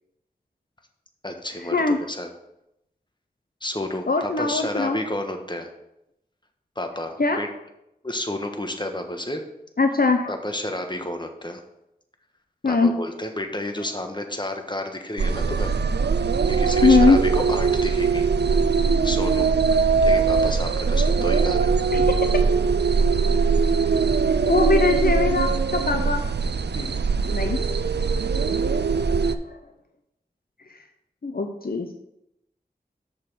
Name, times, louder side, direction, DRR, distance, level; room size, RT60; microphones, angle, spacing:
voice 1, 1.2-2.3 3.6-5.7 6.8-7.5 8.0-9.4 10.3-11.6 12.6-15.7 16.1-18.3 19.0-21.7 26.7-26.9 28.7-29.0, left 1 dB, 25° left, 4 dB, 1.3 m, -31 dB
voice 2, 4.1-5.0 7.2-7.4 9.8-10.3 12.6-12.9 16.8-17.2 21.9-22.1 24.3-26.2 27.3-27.6 29.3-29.6 30.7-30.8 31.2-31.9, left 3 dB, 65° left, 5 dB, 0.7 m, -21 dB
sound 1, 15.2-29.4, right 5 dB, 90° right, 0.4 m, -21 dB
6.7 x 5.6 x 6.5 m, 0.83 s
wide cardioid pair, 40°, 17 cm